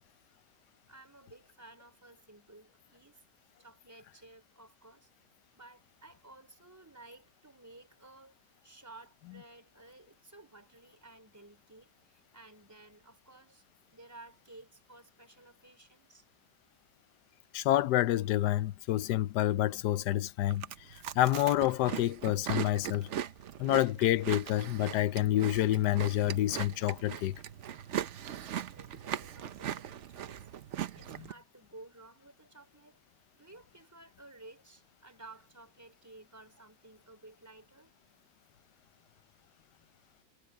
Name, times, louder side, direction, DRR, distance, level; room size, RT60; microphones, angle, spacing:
voice 1, 0.9-3.2 3.6-5.1 5.5-13.6 13.9-16.3 28.4-30.5 31.0-33.0 33.4-37.9, right 2 dB, 10° right, 4.2 m, -55 dB
voice 2, 17.5-23.1 23.6-27.4 31.2-31.3, left 14 dB, 90° left, 1.2 m, -28 dB
Chewing mastication, 20.5-31.3, right 10 dB, 55° right, 0.9 m, -40 dB
omnidirectional pair, 1.7 m